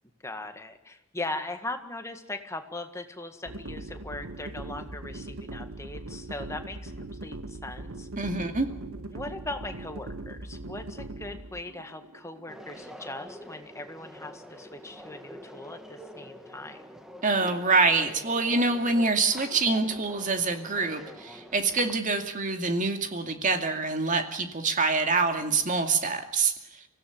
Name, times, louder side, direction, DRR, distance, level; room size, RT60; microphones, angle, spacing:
voice 1, 0.2-8.1 9.0-16.8, left 2 dB, 15° left, 6 dB, 1.8 m, -39 dB
sound 1, 3.4-13.5, right 2 dB, 80° right, 1.5 m, -40 dB
voice 2, 8.2-8.7 17.2-26.8, right 4 dB, 40° right, 5 dB, 2.3 m, -26 dB
sound 2, 12.5-22.0, equal, ahead, 1.7 m, -46 dB
25.0 x 16.5 x 9.5 m, 0.83 s
head